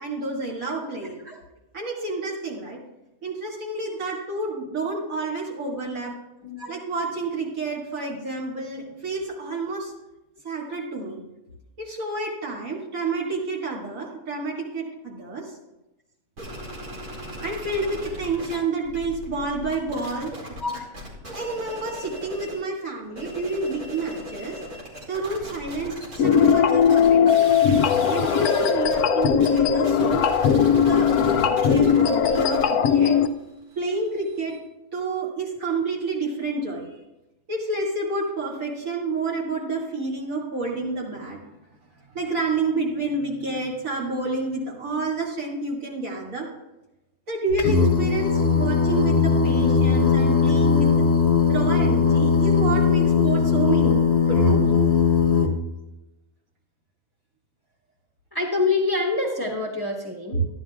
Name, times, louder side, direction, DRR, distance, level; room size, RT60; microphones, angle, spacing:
voice 1, 0.0-1.2 1.7-2.8 3.2-6.1 6.7-9.9 10.4-11.2 11.8-15.4 17.4-20.3 21.3-24.6 25.1-27.5 28.1-30.3 30.7-33.2 33.8-34.5 34.9-36.9 37.5-41.4 42.1-46.5 47.3-50.9 51.5-54.8 60.3-60.5, right 3 dB, 65° right, -4 dB, 2.7 m, -29 dB
sound 1, 16.4-18.6 18.8-22.7 23.0-34.6, equal, 85° right, 2.8 m, -38 dB
sound 2, 26.2-33.3, left 7 dB, 85° left, 1.1 m, -19 dB
voice 2, 44.6-45.0 58.3-60.4, left 3 dB, 15° left, -2 dB, 1.1 m, -26 dB
Singing, 47.6-55.5, left 5 dB, 45° left, 1.2 m, -19 dB
13.5 x 10.5 x 2.4 m, 0.96 s
omnidirectional pair, 1.5 m